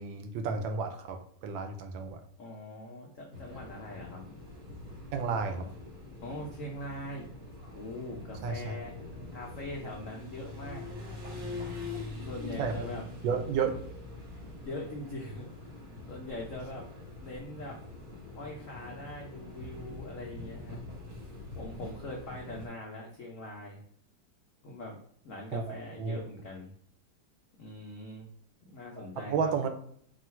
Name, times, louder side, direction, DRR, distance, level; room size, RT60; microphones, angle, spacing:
voice 1, 0.0-2.2 5.1-5.7 8.4-8.7 12.6-12.9 13.2-13.7 25.5-25.6 26.0-26.2 29.2-29.7, right 5 dB, 80° right, 6 dB, 1.3 m, -32 dB
voice 2, 2.4-4.2 6.2-7.3 7.7-10.9 11.3-13.0 14.4-15.5 16.1-16.8 17.2-17.8 18.3-20.8 21.5-23.8 24.6-25.0 25.2-26.7 27.6-28.3 28.6-29.5, left 1 dB, 75° left, -1 dB, 0.7 m, -42 dB
sound 1, 3.3-22.7, left 2 dB, 40° right, 1.0 m, -44 dB
3.7 x 2.4 x 4.4 m, 0.64 s
omnidirectional pair, 2.2 m